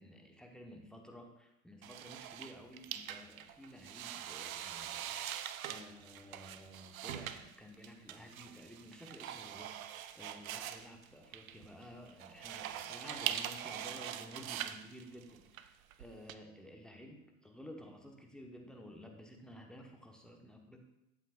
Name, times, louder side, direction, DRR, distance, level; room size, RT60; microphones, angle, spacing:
voice 1, 0.0-5.3 5.7-20.8, equal, ahead, 2 dB, 1.2 m, -53 dB
sound 1, 1.8-16.3, right 11 dB, 70° right, 0.7 m, -43 dB
12.0 x 8.1 x 2.5 m, 0.88 s
figure-of-eight pair, 85°, 43 cm